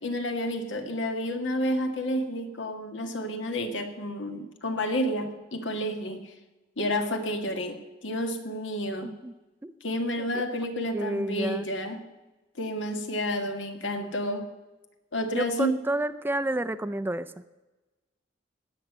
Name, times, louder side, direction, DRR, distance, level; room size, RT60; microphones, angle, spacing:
voice 1, 0.0-6.3 6.8-9.1 9.8-12.0 12.6-14.5 15.1-15.8, equal, 85° left, 5 dB, 1.7 m, -30 dB
voice 2, 9.0-9.3 9.6-9.7 10.2-10.6 10.9-11.6 15.3-17.3, right 1 dB, 10° right, 14 dB, 0.4 m, -30 dB
18.0 x 6.4 x 8.0 m, 1.1 s
head